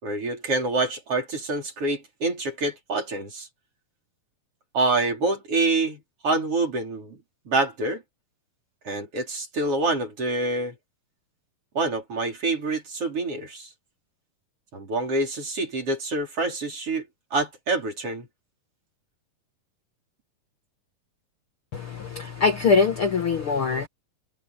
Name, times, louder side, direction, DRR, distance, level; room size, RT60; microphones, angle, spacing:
voice 1, 0.0-3.5 4.7-7.2 7.4-8.0 8.8-10.7 11.7-13.7 14.7-17.1 17.3-18.3, right 2 dB, 40° right, 5.1 m, -26 dB
voice 2, 21.7-23.9, left 5 dB, 50° left, 1.9 m, -23 dB
omnidirectional pair, 4.1 m